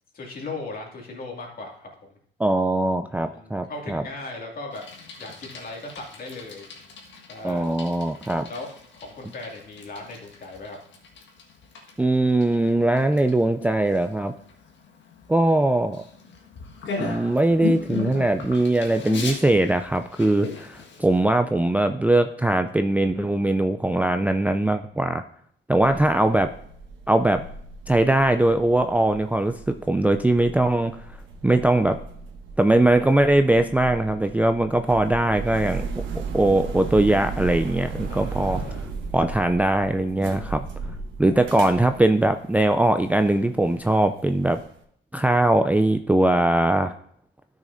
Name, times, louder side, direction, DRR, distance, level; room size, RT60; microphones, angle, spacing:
voice 1, 0.1-1.9 3.1-4.8 5.1-6.7 7.3-7.8 8.5-10.8 25.8-26.2 38.1-38.9, left 2 dB, 45° left, 0 dB, 2.4 m, -38 dB
voice 2, 2.4-4.0 7.4-8.5 12.0-14.3 15.3-16.0 17.0-25.2 25.7-26.5 27.1-27.4 27.9-31.1 31.4-32.0 32.6-38.6 39.1-40.7 41.2-44.6 45.1-46.9, right 1 dB, 5° right, 7 dB, 0.4 m, -21 dB
Bicycle, 4.7-21.2, left 6 dB, 65° left, 1.7 m, -38 dB
sound 1, 25.7-44.6, right 4 dB, 75° right, 1.2 m, -36 dB
12.0 x 6.4 x 2.7 m, 0.65 s
cardioid pair, 90°, 20 cm